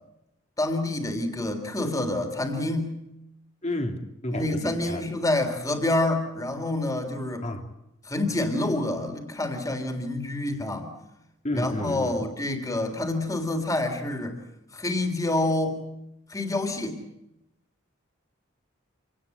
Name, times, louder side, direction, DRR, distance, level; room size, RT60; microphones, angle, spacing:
voice 1, 0.6-3.0 4.3-7.5 8.0-10.9 11.5-14.4 14.7-15.8 16.3-17.0, left 2 dB, 15° left, 5 dB, 3.6 m, -27 dB
voice 2, 3.6-5.0 7.4-7.7 11.4-12.2, left 1 dB, 35° left, 5 dB, 3.0 m, -31 dB
27.5 x 19.0 x 8.6 m, 0.86 s
head